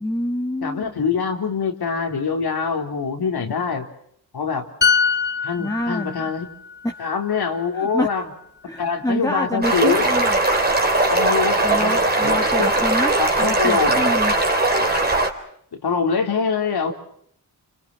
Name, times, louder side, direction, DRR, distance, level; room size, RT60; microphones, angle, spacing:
voice 1, 0.0-0.9 5.6-6.3 6.8-6.9 7.8-8.1 8.7-10.4 11.6-14.3, left 1 dB, 10° left, 2 dB, 2.1 m, -26 dB
voice 2, 0.6-3.9 4.3-4.7 5.4-6.5 7.0-8.3 8.8-10.1 11.1-12.7 13.2-14.1 15.7-16.9, left 5 dB, 80° left, 3 dB, 4.0 m, -24 dB
sound 1, 4.8-8.4 8.7-9.0, left 5 dB, 30° left, 1.3 m, -25 dB
sound 2, 9.6-15.3, right 2 dB, 25° right, 3.9 m, -19 dB
30.0 x 26.0 x 5.8 m, 0.68 s
cardioid pair, 80°, 37 cm